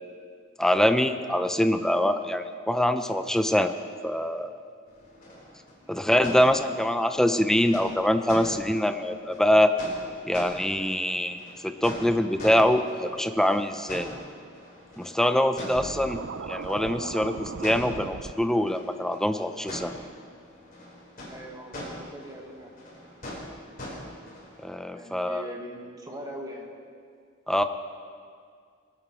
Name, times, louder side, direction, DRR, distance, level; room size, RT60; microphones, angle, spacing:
voice 1, 0.6-3.8 4.0-4.5 5.9-9.7 10.2-11.4 11.6-14.1 15.0-16.2 16.5-19.9 24.6-25.5 27.5-27.6, left 1 dB, 5° left, 9 dB, 0.5 m, -24 dB
sound 1, 4.9-24.6, left 1 dB, 45° left, 3.3 m, -43 dB
Scratching (performance technique), 15.8-18.3, right 4 dB, 65° right, 0.5 m, -37 dB
voice 2, 21.3-22.7 24.9-26.7, equal, 20° right, 0 dB, 1.5 m, -41 dB
20.5 x 8.2 x 4.5 m, 2.2 s
head